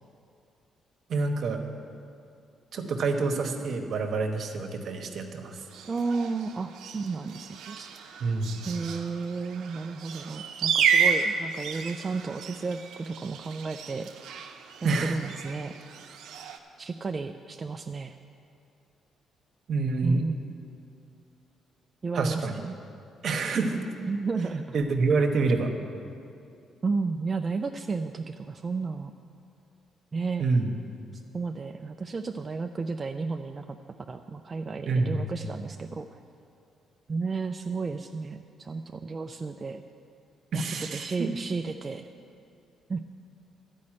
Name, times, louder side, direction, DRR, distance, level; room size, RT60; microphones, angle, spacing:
voice 1, 1.1-1.6 2.7-5.6 8.2-8.6 14.8-15.2 19.7-20.2 22.1-22.6 23.2-23.8 24.7-25.7 30.4-30.7 34.8-35.3 40.5-41.3, right 3 dB, 60° right, 5 dB, 1.1 m, -27 dB
sound 1, 5.7-16.6, right 6 dB, 85° right, 0.7 m, -32 dB
voice 2, 5.9-7.9 8.7-14.1 14.8-15.7 16.8-18.1 20.0-20.5 22.0-22.7 24.1-24.7 26.8-29.1 30.1-30.4 31.3-33.8 34.1-36.1 37.1-39.8 40.5-42.1 42.9-43.0, right 4 dB, 30° right, 5 dB, 0.4 m, -32 dB
11.5 x 5.3 x 8.6 m, 2.5 s
cardioid pair, 90°, 0 cm